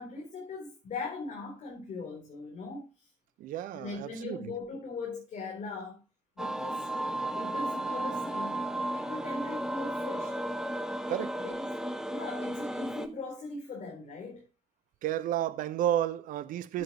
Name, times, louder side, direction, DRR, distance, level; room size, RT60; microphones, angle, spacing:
voice 1, 0.0-3.1 3.7-6.0 6.4-6.9 7.3-8.6 8.9-10.4 11.4-11.7 12.1-14.5 16.7-16.8, left 3 dB, 50° left, 3.7 m, -40 dB
voice 2, 3.4-4.5 11.1-11.3 15.0-16.8, right 12 dB, 60° right, 0.7 m, -31 dB
sound 1, 6.4-13.1, right 1 dB, 5° right, 1.4 m, -34 dB
13.5 x 7.0 x 3.0 m
figure-of-eight pair, 45°, 16 cm